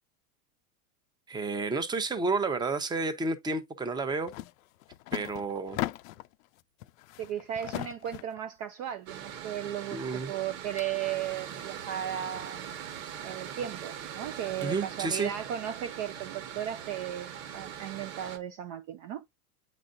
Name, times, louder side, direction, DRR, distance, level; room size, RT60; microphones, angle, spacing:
voice 1, 1.3-4.3 5.1-5.8 9.9-10.3 14.6-15.3, right 3 dB, 10° right, 0.8 m, -31 dB
sound 1, 4.3-4.5 4.8-6.3 6.8-8.4, left 17 dB, 60° left, 0.5 m, -37 dB
voice 2, 7.2-12.6 13.2-19.2, right 10 dB, 35° right, 0.5 m, -36 dB
Mechanical fan, 9.1-18.4, right 9 dB, 60° right, 1.4 m, -41 dB
8.7 x 4.2 x 2.6 m
hypercardioid pair, 115°, 45 cm